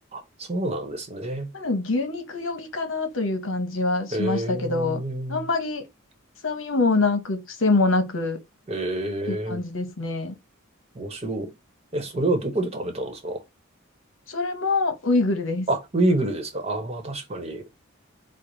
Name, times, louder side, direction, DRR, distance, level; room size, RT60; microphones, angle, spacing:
voice 1, 0.1-1.5 4.1-5.5 8.7-9.6 10.9-11.5 11.9-13.4 15.7-17.6, right 1 dB, 30° right, 1.0 m, -27 dB
voice 2, 1.5-5.0 5.3-5.8 6.4-8.4 9.3-10.3 14.3-15.7, left 3 dB, 65° left, 1.0 m, -25 dB
4.7 x 2.1 x 3.9 m
head